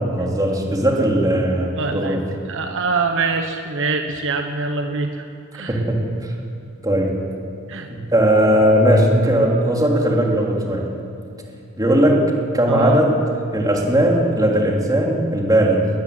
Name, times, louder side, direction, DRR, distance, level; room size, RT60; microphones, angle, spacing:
voice 1, 0.0-2.3 5.7-6.3 6.8-7.2 7.9-10.9 11.8-12.3 12.5-13.2 13.5-15.9, right 1 dB, 15° right, -1 dB, 3.2 m, -18 dB
voice 2, 1.8-5.2 5.5-5.8 7.7-7.9 12.7-13.0, right 4 dB, 60° right, 5 dB, 1.3 m, -24 dB
20.5 x 14.0 x 9.6 m, 2.6 s
head